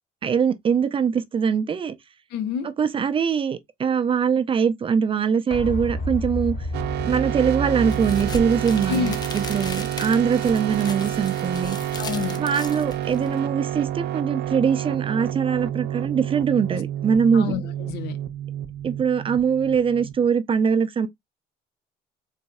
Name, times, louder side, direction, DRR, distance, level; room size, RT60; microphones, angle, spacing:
voice 1, 0.2-1.9 2.8-6.6 7.0-11.8 12.4-17.5 18.8-21.1, right 6 dB, 30° right, 0.5 m, -22 dB
voice 2, 2.3-2.7 8.9-9.2 12.0-12.4 16.7-16.8 17.3-18.2, left 7 dB, 75° left, 0.6 m, -28 dB
sound 1, 5.5-11.1 11.4-11.5, right 1 dB, 45° left, 2.8 m, -31 dB
sound 2, 6.7-20.3, right 11 dB, 75° right, 0.6 m, -29 dB
sound 3, 7.9-13.4, left 3 dB, 25° left, 0.6 m, -37 dB
4.0 x 2.6 x 2.3 m
cardioid pair, 110°, 17 cm